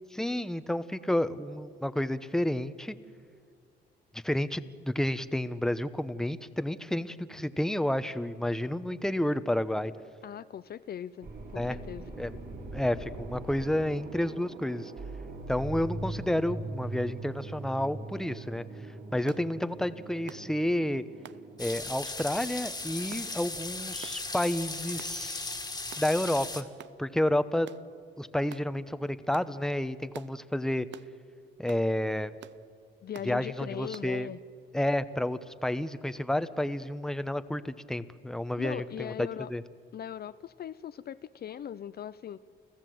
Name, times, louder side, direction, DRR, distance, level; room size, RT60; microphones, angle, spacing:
voice 1, 0.1-2.9 4.1-9.9 11.6-11.8 12.2-12.3 12.7-14.9 15.5-18.6 19.1-21.0 21.6-25.6 26.0-26.7 27.0-27.7 28.2-30.9 31.6-32.3 33.2-34.3 34.7-39.6, left 1 dB, 5° left, 12 dB, 0.9 m, -30 dB
voice 2, 10.2-12.1 33.0-34.4 38.6-39.5 39.9-42.4, left 9 dB, 50° left, 15 dB, 0.6 m, -39 dB
sound 1, 11.2-21.7, right 2 dB, 50° right, 3.7 m, -41 dB
sound 2, 19.3-19.5 20.3-20.5 21.2-21.4 22.2-22.4 23.1-23.3 24.0-24.3 25.0-25.2 25.9-26.1 26.8-27.0 27.7-27.9 28.5-28.7 29.3-29.5 30.1-30.3 30.9-31.1 31.7-31.9 32.4-32.6 33.1-33.3 33.9-34.1, right 11 dB, 65° right, 0.7 m, -48 dB
sound 3, 21.6-26.6, left 3 dB, 20° left, 2.0 m, -37 dB
29.5 x 16.0 x 7.8 m, 2.1 s
cardioid pair, 90°, 20 cm